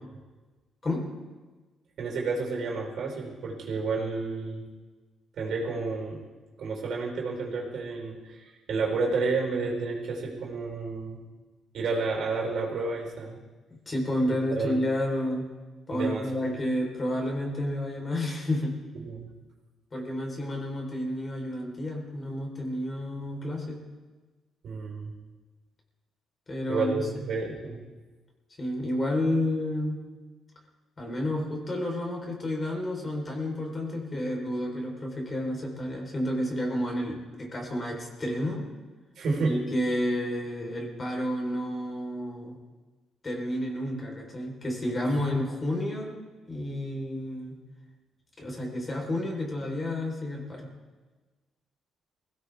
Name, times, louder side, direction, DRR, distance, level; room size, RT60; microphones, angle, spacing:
voice 1, 2.0-4.7 5.4-6.2 6.6-11.2 11.7-13.4 14.5-14.8 15.9-16.5 19.0-19.3 24.6-25.1 26.7-27.8 39.2-39.5, right 4 dB, 65° right, 0 dB, 4.3 m, -30 dB
voice 2, 13.9-15.5 15.9-18.8 19.9-23.8 26.5-27.3 28.6-30.0 31.0-38.7 39.5-42.6 43.2-46.2 46.5-47.6 48.4-50.7, left 1 dB, 30° left, 0 dB, 4.1 m, -30 dB
20.5 x 16.5 x 3.6 m, 1.3 s
cardioid pair, 90°, 0 cm